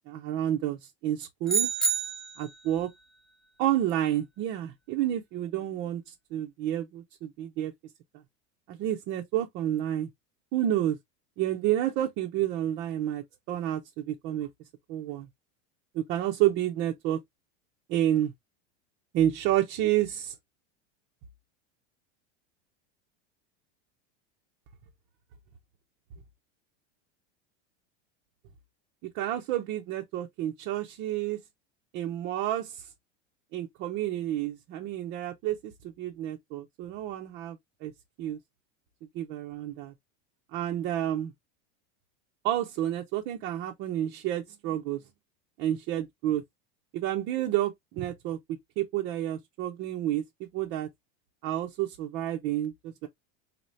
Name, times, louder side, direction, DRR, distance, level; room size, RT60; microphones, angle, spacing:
voice 1, 0.1-1.7 2.4-2.9 3.6-7.7 8.7-10.1 10.5-11.0 11.4-14.5 14.9-15.3 15.9-17.2 17.9-18.3 19.1-20.3 29.1-31.4 31.9-32.9 33.5-37.9 38.2-38.4 39.1-39.9 40.5-41.3 42.4-45.0 45.6-46.4 46.9-50.2 50.5-50.9 51.4-53.1, right 12 dB, 30° right, 0.5 m, -30 dB
sound 1, 1.5-2.6, right 5 dB, ahead, 0.8 m, -28 dB
4.1 x 2.7 x 3.0 m
supercardioid pair, 170°, 35 cm